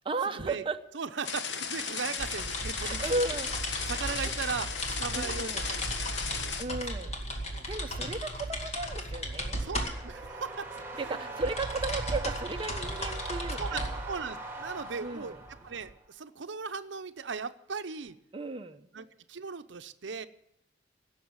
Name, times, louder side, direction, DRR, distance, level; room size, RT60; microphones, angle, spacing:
voice 1, 0.0-0.8 2.8-3.5 3.8-3.9 4.2-4.3 5.1-5.6 6.6-7.1 7.7-9.6 11.0-14.0 15.0-15.4 18.3-18.9, right 3 dB, 30° right, 6 dB, 0.7 m, -35 dB
voice 2, 0.9-3.0 3.8-4.7 5.0-7.7 9.6-11.4 13.5-18.2 18.9-20.3, right 5 dB, 85° right, 11 dB, 0.7 m, -38 dB
sound 1, 1.2-6.6, left 6 dB, 70° left, 1.3 m, -35 dB
sound 2, 2.2-15.9, equal, 35° left, 2.2 m, -36 dB
sound 3, 9.0-16.0, right 3 dB, 15° right, 2.1 m, -42 dB
16.5 x 6.6 x 9.6 m, 0.85 s
head